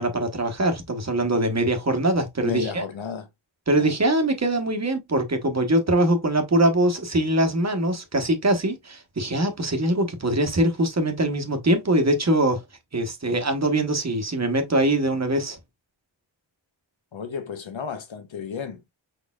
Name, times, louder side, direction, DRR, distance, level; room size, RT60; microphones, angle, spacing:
voice 1, 0.0-2.8 3.7-12.6 12.9-15.6, right 1 dB, 35° right, 1.1 m, -22 dB
voice 2, 2.4-3.3 3.7-3.9 17.1-18.9, left 6 dB, 75° left, 1.0 m, -33 dB
4.8 x 4.2 x 2.3 m
wide cardioid pair, 120°, 47 cm